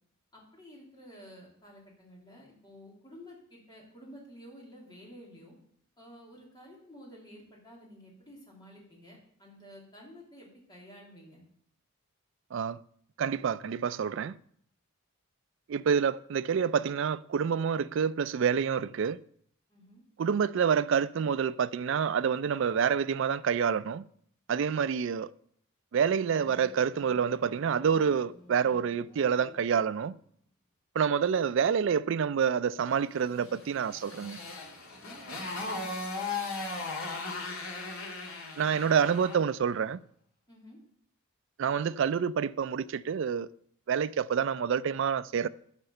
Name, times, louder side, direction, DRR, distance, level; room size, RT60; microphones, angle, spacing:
voice 1, 0.3-5.5 6.0-11.4 19.7-20.0 35.6-36.0 40.5-40.8, equal, 20° left, 2.9 m, -51 dB
voice 2, 13.2-14.3 15.7-19.2 20.2-24.0 24.5-25.3 25.9-30.1 31.0-34.4 38.6-40.0 41.6-43.5 43.9-45.5, right 7 dB, 60° right, 0.3 m, -27 dB
Motorcycle, 26.1-30.4, equal, 40° left, 3.1 m, -54 dB
Motorcycle 2, 33.4-39.5, left 3 dB, 70° left, 2.4 m, -37 dB
12.0 x 4.9 x 6.7 m
head